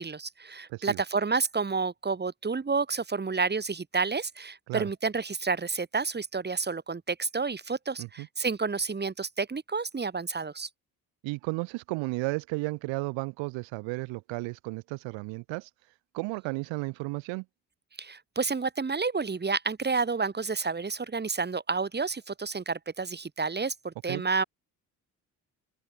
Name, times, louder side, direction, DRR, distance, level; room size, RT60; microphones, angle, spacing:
voice 1, 0.0-10.7 18.0-24.4, right 4 dB, 25° right, 1.3 m, -30 dB
voice 2, 0.7-1.0 4.7-4.9 8.0-8.3 11.2-15.7 16.1-17.5 24.1-24.2, right 24 dB, 75° right, 5.8 m, -33 dB
open air
hypercardioid pair, 50°, 45 cm